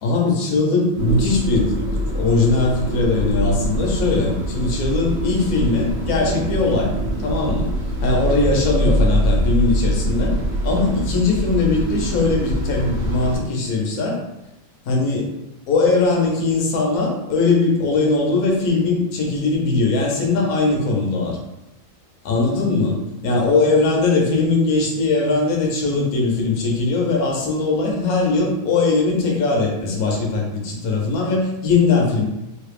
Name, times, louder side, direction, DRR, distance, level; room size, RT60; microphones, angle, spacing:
voice 1, 0.0-6.9 7.2-7.7 8.0-10.3 10.6-14.2 14.8-15.3 15.7-21.4 22.2-32.2, left 3 dB, 60° left, -2 dB, 1.0 m, -20 dB
sound 1, 0.9-13.4, right 1 dB, 90° right, 0.6 m, -23 dB
3.2 x 2.3 x 3.3 m, 0.90 s
omnidirectional pair, 2.2 m